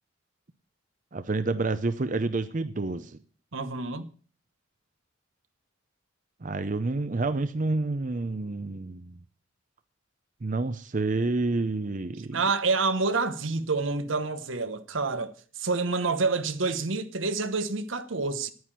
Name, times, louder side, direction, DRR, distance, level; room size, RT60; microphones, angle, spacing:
voice 1, 1.1-3.2 6.4-9.2 10.4-12.4, right 3 dB, 40° right, 0.6 m, -29 dB
voice 2, 3.5-4.1 12.3-18.5, right 4 dB, 80° right, 1.1 m, -28 dB
10.0 x 9.5 x 7.4 m
head